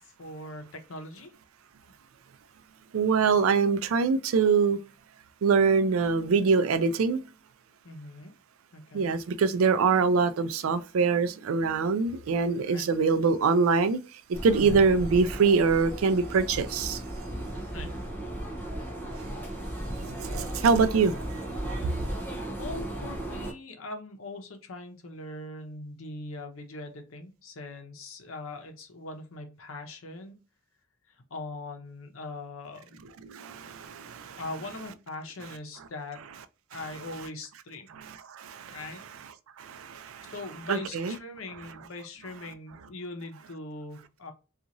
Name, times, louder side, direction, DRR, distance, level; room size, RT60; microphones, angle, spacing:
voice 1, 0.2-1.3 7.8-8.3 8.7-9.1 12.7-12.9 14.5-14.8 17.7-17.9 22.6-30.4 31.3-33.0 34.4-36.2 36.7-37.9 38.6-39.0 40.2-44.3, left 2 dB, 70° left, 0.7 m, -41 dB
voice 2, 2.9-4.8 5.4-7.2 8.9-17.0 19.1-19.4 20.0-21.4 21.7-22.0 33.2-34.4 37.9-38.8 39.6-40.3 40.7-41.2, right 5 dB, 75° right, 0.4 m, -24 dB
sound 1, 14.3-23.5, right 1 dB, 10° left, 0.6 m, -35 dB
2.9 x 2.4 x 2.5 m
head